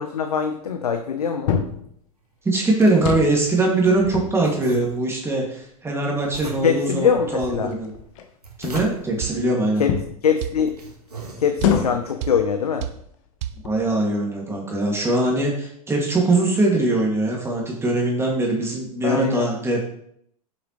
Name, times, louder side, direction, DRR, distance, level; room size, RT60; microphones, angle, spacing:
voice 1, 0.0-1.6 6.4-7.7 9.8-9.9 10.2-10.7 11.4-12.9 19.0-19.5, left 7 dB, 80° left, 7 dB, 0.8 m, -23 dB
sound 1, 1.5-1.9 2.8-3.4 3.8-4.9 5.6-5.7 6.3-8.3 8.6-9.1 9.9-10.2 11.6-12.1 12.9-13.0 13.5-14.0, left 8 dB, 55° left, 1.3 m, -27 dB
sound 2, 2.2-4.0 4.4-5.3 6.2-7.0 8.2-9.2 10.0-10.1 10.5-11.9, right 4 dB, 90° right, 1.8 m, -40 dB
voice 2, 2.4-7.9 8.6-9.8 13.6-19.8, right 2 dB, 15° right, -2 dB, 2.3 m, -22 dB
sound 3, 9.2-9.4 10.4-10.6 11.6-11.8 12.2-12.4 12.8-13.0 13.4-13.6, right 12 dB, 50° right, 0.8 m, -29 dB
9.6 x 7.1 x 3.2 m, 0.69 s
figure-of-eight pair, 90°, 19 cm